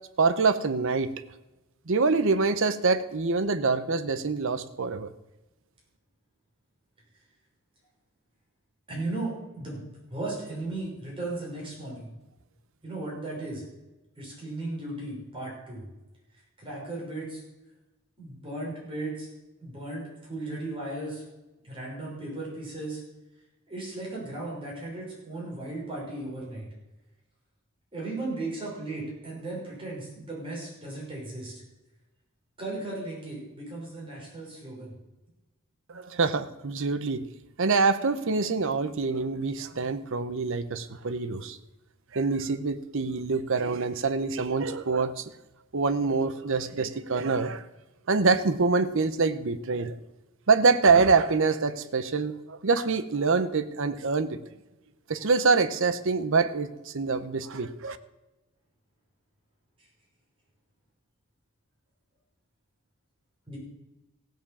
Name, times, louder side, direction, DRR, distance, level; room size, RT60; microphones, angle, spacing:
voice 1, 0.2-1.1 1.9-5.1 35.9-37.2 37.6-41.6 42.1-45.3 45.7-47.6 48.1-50.0 50.5-54.4 55.1-58.0, right 4 dB, 60° right, 12 dB, 0.8 m, -25 dB
voice 2, 8.9-9.8 10.1-12.1 12.8-13.6 14.2-15.8 16.6-17.4 18.2-19.3 19.6-21.2 21.6-23.0 23.7-26.7 27.9-31.5 32.6-34.9 63.5-63.6, right 2 dB, 25° right, -4 dB, 6.0 m, -36 dB
16.0 x 7.0 x 7.3 m, 1.0 s
head